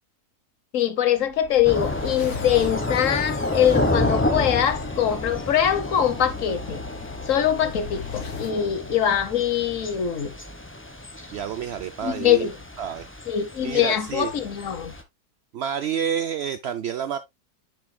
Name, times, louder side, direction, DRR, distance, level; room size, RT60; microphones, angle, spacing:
voice 1, 0.7-6.8 7.3-10.3 12.0-12.5 13.3-14.9, left 10 dB, 60° left, 1.3 m, -23 dB
sound 1, 1.2-8.6, left 7 dB, 75° left, 1.8 m, -38 dB
Thunder / Rain, 1.6-15.0, left 1 dB, 10° left, 0.7 m, -30 dB
voice 2, 11.3-12.5 12.8-13.1 13.6-14.3 15.5-17.2, right 8 dB, 70° right, 0.6 m, -29 dB
10.0 x 6.2 x 2.2 m
omnidirectional pair, 1.6 m